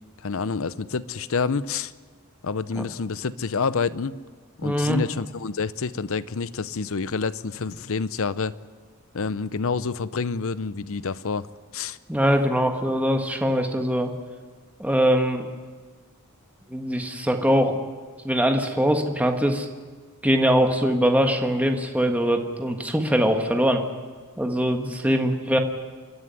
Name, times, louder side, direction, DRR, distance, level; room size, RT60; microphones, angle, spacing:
voice 1, 0.2-1.9 2.4-4.2 4.6-8.5 9.1-11.5 11.7-12.0, left 5 dB, 65° left, 16 dB, 0.7 m, -28 dB
voice 2, 4.6-5.0 12.1-14.1 14.8-15.5 16.7-17.8 18.2-19.7 20.2-23.8 24.4-25.6, equal, 5° right, 4 dB, 1.5 m, -22 dB
28.5 x 11.0 x 9.7 m, 1.5 s
head